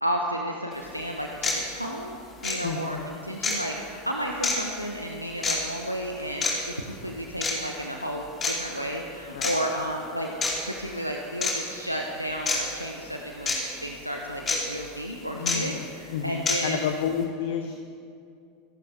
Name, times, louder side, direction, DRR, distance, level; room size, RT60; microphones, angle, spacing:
voice 1, 0.0-2.2 2.4-10.3 10.6-16.9, equal, 90° right, 1 dB, 0.9 m, -32 dB
sound 1, 0.7-0.8 1.4-1.6 2.4-2.6 3.4-3.6 4.4-4.6 5.4-5.6 6.4-6.5 7.4-7.6 8.4-8.5 9.4-9.5 10.4-10.5 11.4-11.5 12.5-12.6 13.5-13.6 14.5-14.6 15.5-15.6 16.5-16.6, left 4 dB, 25° left, 3.0 m, -25 dB
voice 2, 2.6-3.1 9.3-9.5 15.4-15.8 16.1-17.8, left 8 dB, 60° left, 6 dB, 0.9 m, -30 dB
26.0 x 11.5 x 3.4 m, 2.4 s
figure-of-eight pair, 80°, 0 cm